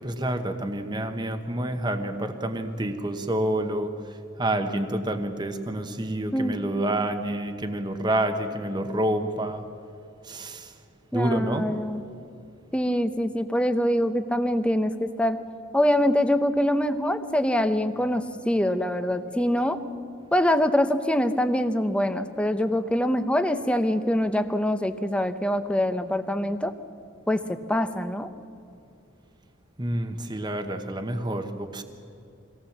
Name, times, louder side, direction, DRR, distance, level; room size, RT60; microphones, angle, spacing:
voice 1, 0.0-9.6 10.2-10.8 11.1-11.7 29.8-31.8, right 1 dB, 20° right, 6 dB, 1.1 m, -28 dB
voice 2, 11.1-12.0 12.7-15.4 15.7-19.8 20.3-26.7 27.3-28.3, left 1 dB, 5° left, 9 dB, 0.7 m, -24 dB
23.5 x 18.0 x 7.3 m, 2.6 s
head